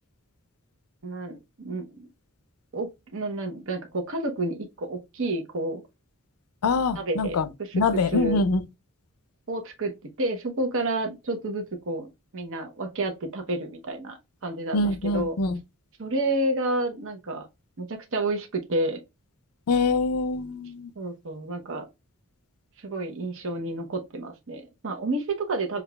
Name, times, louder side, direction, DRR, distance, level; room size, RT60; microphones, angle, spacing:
voice 1, 1.0-2.0 2.7-5.8 7.0-8.4 9.5-9.9 10.2-15.4 16.0-17.5 17.8-19.0 21.0-21.8 22.8-25.8, right 2 dB, 60° right, 0.8 m, -30 dB
voice 2, 6.6-7.5 7.7-8.6 14.7-15.6 19.7-20.9, left 3 dB, 75° left, 0.5 m, -24 dB
6.7 x 2.4 x 2.2 m
head